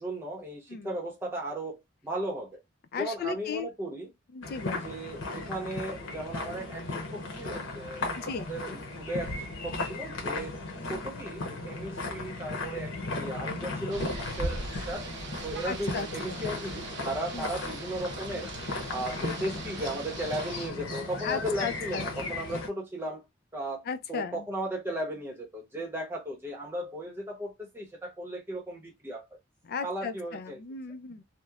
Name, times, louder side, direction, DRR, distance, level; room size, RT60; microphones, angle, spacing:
voice 1, 0.0-2.6 3.0-4.1 4.8-10.6 10.9-15.1 15.4-18.5 18.9-29.2 29.8-30.6, right 1 dB, 10° right, 0.8 m, -36 dB
voice 2, 2.9-3.7 4.3-4.9 8.1-8.5 15.7-16.5 17.3-17.6 21.2-22.4 23.8-24.5 29.6-31.2, left 5 dB, 50° left, 0.4 m, -36 dB
sound 1, 4.4-22.7, left 2 dB, 90° left, 0.8 m, -36 dB
Rain, 13.9-20.7, right 3 dB, 60° right, 0.6 m, -40 dB
2.9 x 2.0 x 2.3 m
head